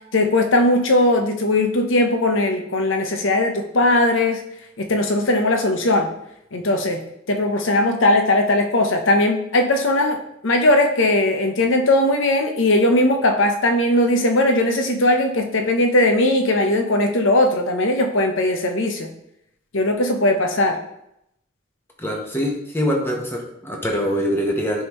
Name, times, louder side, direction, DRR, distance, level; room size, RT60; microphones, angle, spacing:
voice 1, 0.0-4.4 4.8-6.1 6.5-7.0 7.3-19.1 19.7-20.8, left 1 dB, 75° left, 4 dB, 0.9 m, -19 dB
voice 2, 22.0-24.8, equal, 10° left, -1 dB, 1.0 m, -24 dB
9.6 x 3.6 x 3.1 m, 0.79 s
head